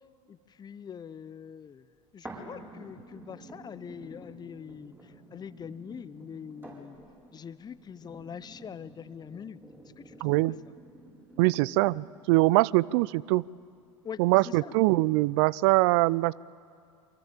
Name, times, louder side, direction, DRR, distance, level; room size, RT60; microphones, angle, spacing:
voice 1, 0.3-1.9 2.1-7.0 7.3-9.6 10.0-10.7 14.0-14.7, left 7 dB, 25° left, 17 dB, 0.8 m, -44 dB
sound 1, 2.2-12.2 12.8-12.9, right 1 dB, 15° right, 7.7 m, -49 dB
voice 2, 10.2-10.6 11.4-13.5 14.2-16.3, right 20 dB, 55° right, 24 dB, 0.5 m, -23 dB
28.0 x 24.0 x 7.4 m, 2.4 s
figure-of-eight pair, 80°, 17 cm